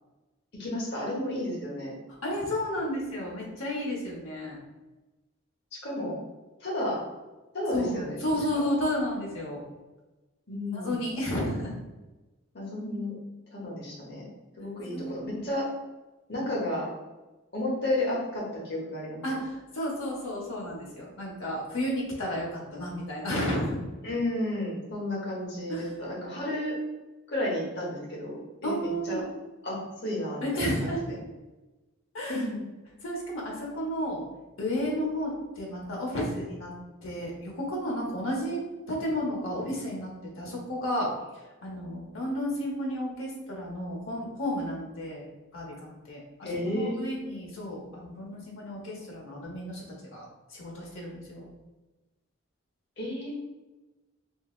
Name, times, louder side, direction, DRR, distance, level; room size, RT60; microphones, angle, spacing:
voice 1, 0.5-2.0 5.8-6.2 6.6-7.0 7.5-8.2 10.5-11.0 12.5-13.2 13.5-14.3 14.6-15.7 16.3-16.9 17.5-19.2 24.0-26.8 27.3-29.2 29.6-30.9 32.3-32.6 46.4-47.0 53.0-53.3, left 1 dB, 55° left, -4 dB, 1.0 m, -32 dB
voice 2, 2.2-4.6 7.7-9.6 10.7-11.7 14.9-15.5 19.2-23.8 25.7-25.9 28.6-29.2 30.4-31.1 32.1-32.4 33.0-34.2 34.6-36.7 37.0-38.6 38.9-41.1 41.6-45.3 45.5-49.8 50.1-50.2 50.5-51.5, equal, 80° left, -3 dB, 0.9 m, -32 dB
3.0 x 2.6 x 2.4 m, 1.1 s
head